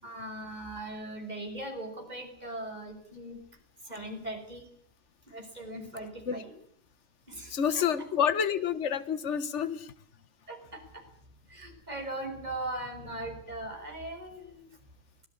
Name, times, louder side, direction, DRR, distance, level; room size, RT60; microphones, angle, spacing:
voice 1, 0.0-3.4 3.8-4.7 5.3-6.5 7.3-7.8 10.5-11.1 11.5-14.7, right 1 dB, 25° right, 4 dB, 6.0 m, -39 dB
voice 2, 7.5-9.9, left 8 dB, 45° left, 13 dB, 1.6 m, -28 dB
25.0 x 17.5 x 8.6 m, 0.62 s
omnidirectional pair, 1.8 m